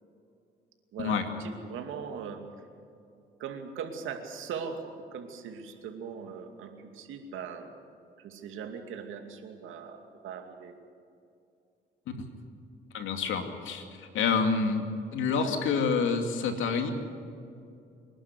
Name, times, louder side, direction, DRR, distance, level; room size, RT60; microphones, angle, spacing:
voice 1, 0.9-2.4 3.4-7.7 8.2-10.7, right 6 dB, 85° right, 5 dB, 2.5 m, -40 dB
voice 2, 12.9-14.9 15.1-16.9, left 5 dB, 80° left, 5 dB, 2.6 m, -28 dB
25.5 x 11.5 x 9.9 m, 2.5 s
cardioid pair, 90°, 20 cm